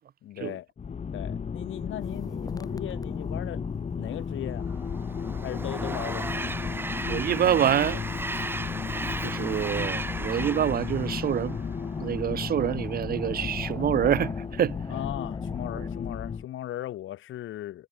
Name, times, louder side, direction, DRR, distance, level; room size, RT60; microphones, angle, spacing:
voice 1, 0.2-0.7 1.1-3.7 3.9-4.7 5.4-6.3 14.9-17.9, left 13 dB, 80° left, 2.4 m, -37 dB
sound 1, 0.8-16.4, left 6 dB, 35° left, 1.0 m, -34 dB
Apache flypast, 2.0-15.9, left 2 dB, 20° left, 3.1 m, -41 dB
Train, 4.6-12.1, right 2 dB, 10° right, 0.6 m, -35 dB
voice 2, 7.0-8.5 9.2-11.6 12.0-14.8 15.8-15.9, right 10 dB, 50° right, 0.6 m, -27 dB
cardioid pair, 90°, 20 cm